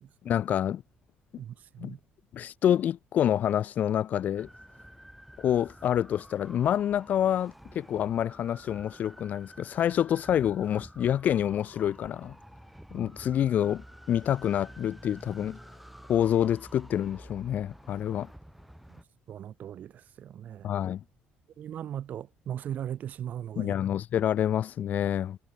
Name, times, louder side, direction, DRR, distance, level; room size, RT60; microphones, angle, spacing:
voice 1, 0.2-0.8 1.8-1.9 2.3-4.5 5.4-12.3 12.9-15.6 16.1-18.3 20.6-21.0 23.6-25.4, left 10 dB, 55° left, 1.2 m, -27 dB
voice 2, 1.4-2.0 18.9-19.0 19.3-20.7 21.6-23.7, right 10 dB, 50° right, 0.9 m, -38 dB
sound 1, 4.4-19.0, equal, ahead, 3.3 m, -50 dB
cardioid pair, 120°, 3 cm